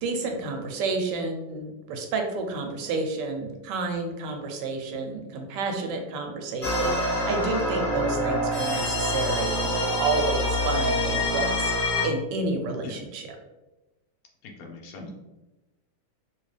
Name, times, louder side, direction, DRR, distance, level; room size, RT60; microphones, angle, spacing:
voice 1, 0.0-11.7 12.0-13.3, right 3 dB, 75° right, 3 dB, 1.1 m, -30 dB
sound 1, 6.6-12.1, left 1 dB, 40° left, 0.8 m, -26 dB
voice 2, 14.4-15.1, left 3 dB, 85° left, 0 dB, 0.7 m, -41 dB
2.9 x 2.9 x 3.1 m, 1.1 s
omnidirectional pair, 2.2 m